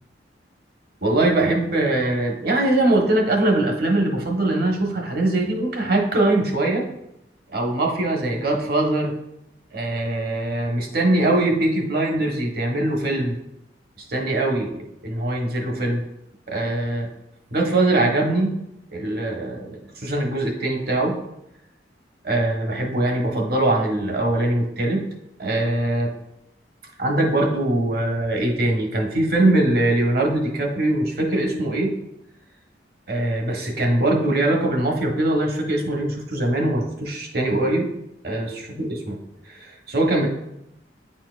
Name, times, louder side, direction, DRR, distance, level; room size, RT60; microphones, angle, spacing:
voice 1, 1.0-6.8 7.5-9.1 9.7-13.4 14.1-16.0 16.5-17.1 17.5-18.5 18.9-21.2 22.2-25.0 25.4-26.1 27.0-31.9 33.1-37.9 38.2-39.2 39.4-40.3, right 1 dB, 55° right, 0 dB, 1.1 m, -22 dB
9.6 x 4.3 x 2.4 m, 0.84 s
head